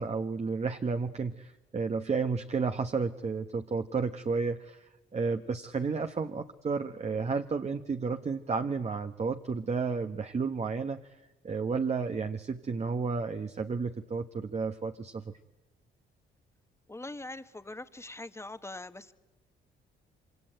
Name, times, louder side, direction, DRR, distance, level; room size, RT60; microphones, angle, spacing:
voice 1, 0.0-11.2 11.4-15.3, right 4 dB, 35° right, 7 dB, 1.1 m, -32 dB
voice 2, 16.9-19.1, left 2 dB, 15° left, 11 dB, 1.4 m, -42 dB
25.5 x 25.5 x 9.0 m, 1.0 s
cardioid pair, 90°, 20 cm